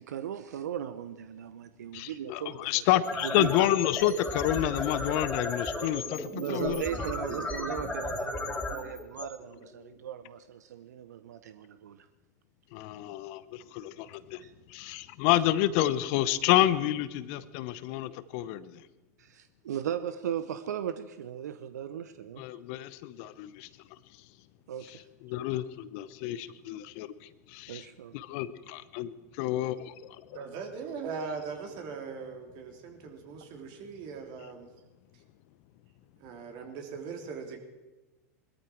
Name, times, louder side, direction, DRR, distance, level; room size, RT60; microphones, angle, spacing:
voice 1, 0.0-2.8 3.2-3.5 6.4-12.0 14.4-14.5 19.2-22.4 24.7-25.0 27.7-28.1, right 9 dB, 75° right, 12 dB, 0.7 m, -37 dB
voice 2, 1.9-7.1 12.7-14.4 14.7-18.8 22.4-23.7 25.2-27.1 27.5-27.8 28.1-30.2, left 13 dB, 55° left, 16 dB, 0.8 m, -29 dB
sound 1, 3.0-10.0, left 2 dB, 10° left, 3.4 m, -35 dB
voice 3, 30.3-34.7 36.2-37.6, right 5 dB, 50° right, 4 dB, 3.1 m, -40 dB
20.5 x 13.5 x 4.6 m, 1.1 s
hypercardioid pair, 95°, 9 cm